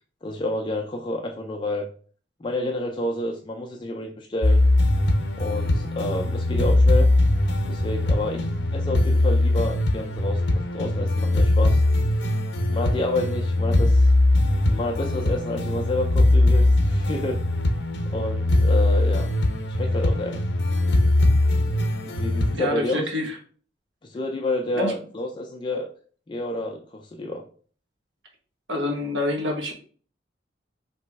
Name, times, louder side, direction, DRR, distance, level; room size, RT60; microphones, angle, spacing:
voice 1, 0.2-1.9 2.4-4.7 5.4-7.1 7.7-10.4 10.7-11.8 12.7-14.1 14.7-17.4 18.1-19.3 19.7-20.4 22.0-23.0 24.0-25.9 26.3-27.4, left 1 dB, 25° left, 2 dB, 0.4 m, -29 dB
sound 1, 4.4-22.5, left 1 dB, 70° left, 0.7 m, -21 dB
voice 2, 22.5-23.3 24.7-24.9 28.7-29.7, left 1 dB, 85° right, 1 dB, 1.1 m, -26 dB
3.3 x 2.9 x 4.6 m, 0.43 s
head